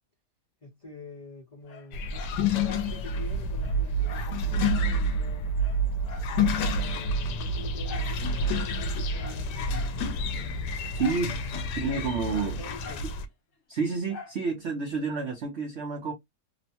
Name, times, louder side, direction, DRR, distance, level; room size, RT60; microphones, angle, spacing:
voice 1, 0.6-5.6 6.4-9.5 12.2-13.0, left 2 dB, 25° left, 0.8 m, -45 dB
Dog, 1.7-2.9 3.3-3.4 3.6-4.9 5.2-5.3 5.6-6.9 7.8-8.2 8.7-10.0 11.0-11.3 11.6-13.1 14.1-14.4 14.9-15.0, left 5 dB, 60° left, 0.9 m, -45 dB
sound 1, 1.9-13.2, equal, 85° left, 1.2 m, -28 dB
voice 2, 10.9-12.6 13.7-16.1, right 4 dB, 60° right, 0.7 m, -30 dB
3.0 x 2.1 x 2.7 m
omnidirectional pair, 1.8 m